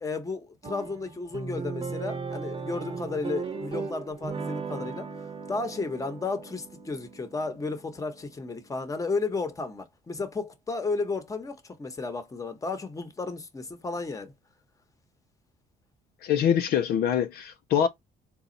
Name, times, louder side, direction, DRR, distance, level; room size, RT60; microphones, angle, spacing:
voice 1, 0.0-5.1 5.5-14.3, left 3 dB, 20° left, 0.9 m, -33 dB
sound 1, 0.6-9.1, right 4 dB, 30° right, 0.8 m, -37 dB
voice 2, 16.2-17.9, left 9 dB, 65° left, 0.5 m, -24 dB
4.1 x 2.3 x 3.8 m
cardioid pair, 110°, 17 cm